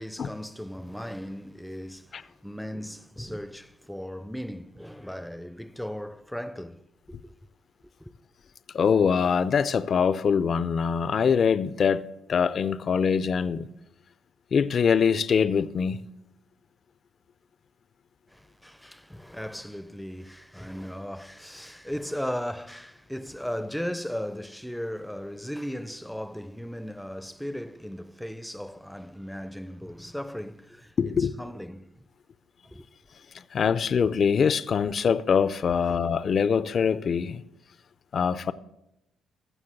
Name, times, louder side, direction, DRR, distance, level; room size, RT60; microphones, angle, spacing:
voice 1, 0.0-7.3 8.0-8.1 18.3-32.0 32.6-32.9 35.8-35.9, equal, ahead, 0.6 m, -37 dB
voice 2, 8.7-13.7 14.5-16.0 31.0-31.3 33.5-37.4 38.1-38.5, left 6 dB, 50° left, 0.5 m, -23 dB
15.0 x 6.2 x 7.4 m
supercardioid pair, 60°, 0 cm